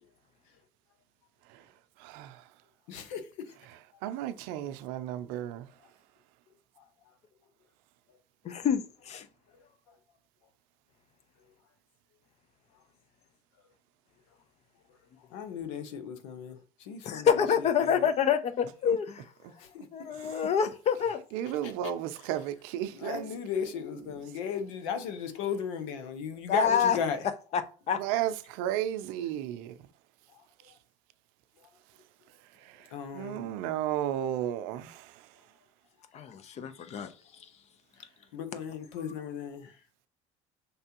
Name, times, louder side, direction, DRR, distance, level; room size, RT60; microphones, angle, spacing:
voice 1, 2.0-2.4 4.0-5.7 20.2-20.3 21.3-23.3 28.0-29.7 33.1-35.1, right 11 dB, 75° right, 0.5 m, -33 dB
voice 2, 2.9-3.5 6.8-6.9 9.9-10.0 15.3-17.4 17.8-18.1 19.6-19.9 21.6-21.7 22.9-27.3 30.3-30.4 30.7-30.8 32.9-33.5 38.3-39.8, left 7 dB, 85° left, 0.8 m, -36 dB
voice 3, 8.4-9.3 17.0-19.2 19.9-21.2 26.5-27.0 27.5-27.6 27.9-28.0 36.1-37.1, left 7 dB, 45° left, 0.7 m, -27 dB
5.4 x 3.3 x 2.9 m
supercardioid pair, 95°, 16 cm